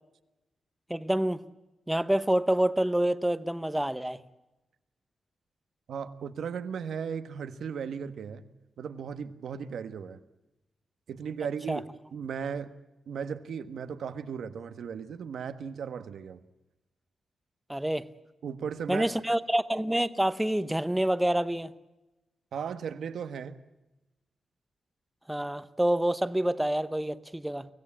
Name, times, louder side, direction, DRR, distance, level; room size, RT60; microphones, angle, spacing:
voice 1, 0.9-1.4 1.9-4.2 11.7-11.8 17.7-18.1 18.9-21.7 25.3-27.7, right 1 dB, 5° right, 13 dB, 0.8 m, -27 dB
voice 2, 5.9-8.5 8.8-10.2 11.1-12.7 13.1-16.4 18.4-19.1 22.5-23.6, right 7 dB, 75° right, 10 dB, 1.4 m, -36 dB
24.0 x 17.0 x 8.7 m, 1.0 s
wide cardioid pair, 150°, 0 cm